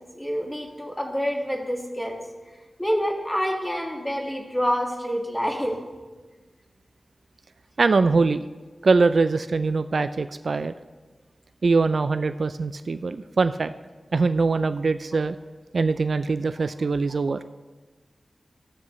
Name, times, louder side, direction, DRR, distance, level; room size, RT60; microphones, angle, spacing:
voice 1, 0.1-2.2 2.8-5.8 17.1-17.2, equal, 10° left, 1 dB, 1.8 m, -27 dB
voice 2, 7.8-8.5 8.8-10.7 11.6-13.7 14.1-15.4 15.7-17.4, right 4 dB, 65° right, 11 dB, 0.4 m, -22 dB
14.5 x 13.0 x 3.2 m, 1.3 s
wide cardioid pair, 95°, 0 cm